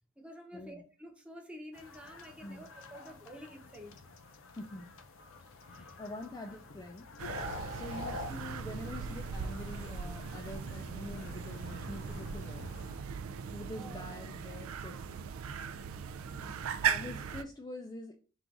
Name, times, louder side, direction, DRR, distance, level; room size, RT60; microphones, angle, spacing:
voice 1, 0.2-4.0 5.7-6.0 13.7-14.1 16.2-16.6, equal, 5° right, 0.8 m, -50 dB
sound 1, 1.7-13.0, left 3 dB, 70° left, 0.6 m, -48 dB
voice 2, 4.6-4.9 6.0-7.1 7.7-12.8 13.5-15.1 16.8-18.2, left 1 dB, 20° left, 0.4 m, -45 dB
sound 2, 7.2-17.4, right 7 dB, 80° right, 0.4 m, -38 dB
3.8 x 2.5 x 4.6 m
head